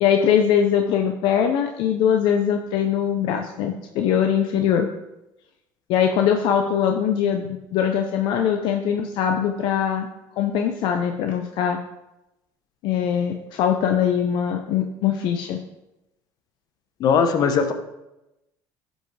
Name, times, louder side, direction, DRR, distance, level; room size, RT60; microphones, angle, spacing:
voice 1, 0.0-4.9 5.9-10.1 10.4-11.8 12.8-15.6, left 8 dB, 70° left, 5 dB, 0.6 m, -22 dB
voice 2, 17.0-17.7, left 6 dB, 50° left, 8 dB, 1.0 m, -19 dB
12.0 x 5.5 x 3.3 m, 0.94 s
cardioid pair, 115°, 8 cm